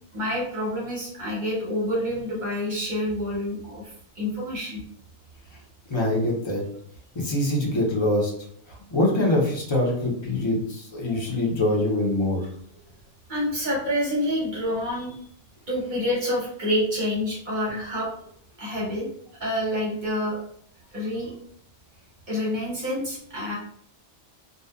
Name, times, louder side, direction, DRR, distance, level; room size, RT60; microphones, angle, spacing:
voice 1, 0.1-3.8 4.1-4.8 13.3-15.1 15.7-18.1 18.6-19.1 19.4-20.4 20.9-21.3 22.3-23.6, left 1 dB, 45° right, -4 dB, 0.8 m, -27 dB
voice 2, 5.9-6.6 7.1-8.3 8.7-12.5, left 1 dB, 35° left, -3 dB, 0.4 m, -24 dB
2.6 x 2.2 x 2.2 m, 0.65 s
omnidirectional pair, 1.3 m